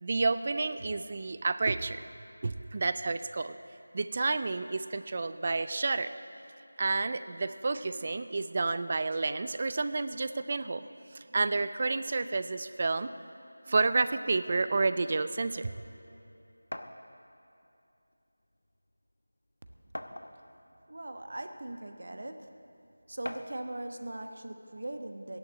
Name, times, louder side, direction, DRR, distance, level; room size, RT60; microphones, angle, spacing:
voice 1, 0.0-2.0 2.4-3.5 3.9-6.1 6.8-13.1 13.7-15.7, right 3 dB, 35° right, 13 dB, 0.4 m, -30 dB
sound 1, 16.7-17.0 18.1-18.2 18.6-18.7 19.9-20.6 21.4-21.5 23.2-23.6, left 1 dB, 75° left, 1.0 m, -41 dB
voice 2, 20.9-22.6 23.1-25.4, right 1 dB, 60° right, 7 dB, 1.1 m, -40 dB
14.5 x 11.0 x 7.4 m, 2.8 s
figure-of-eight pair, 170°, 0 cm